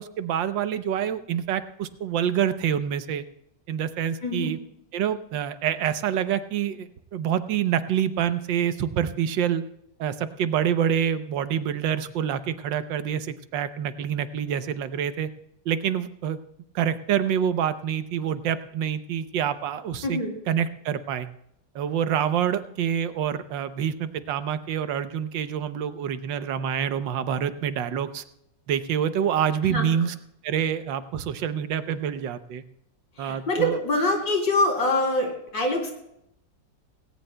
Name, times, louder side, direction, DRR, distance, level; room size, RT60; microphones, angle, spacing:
voice 1, 0.0-3.2 3.7-4.6 4.9-9.6 10.0-15.3 15.6-16.4 16.7-20.2 20.5-21.3 21.7-28.2 28.7-30.1 30.4-32.6 33.2-33.8, right 9 dB, 80° right, 12 dB, 1.5 m, -26 dB
voice 2, 4.2-4.5 20.0-20.3 29.7-29.9 33.2-35.9, left 2 dB, 75° left, 1 dB, 3.7 m, -25 dB
18.0 x 17.5 x 2.2 m, 0.78 s
omnidirectional pair, 2.0 m